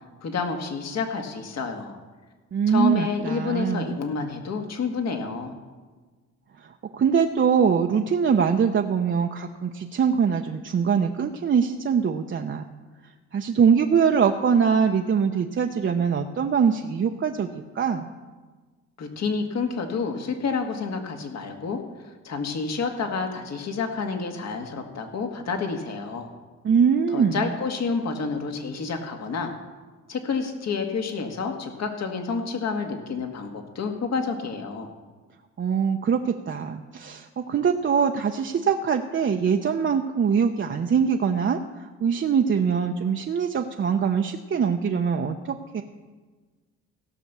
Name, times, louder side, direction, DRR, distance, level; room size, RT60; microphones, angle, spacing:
voice 1, 0.2-2.0 2.7-5.6 19.0-26.3 27.1-29.5 30.1-34.9, left 5 dB, 60° left, 4 dB, 1.8 m, -29 dB
voice 2, 2.5-4.0 6.6-12.6 13.3-18.1 26.6-27.5 35.6-45.8, right 6 dB, 40° right, 4 dB, 0.7 m, -23 dB
16.5 x 6.0 x 6.8 m, 1.4 s
cardioid pair, 90°, 30 cm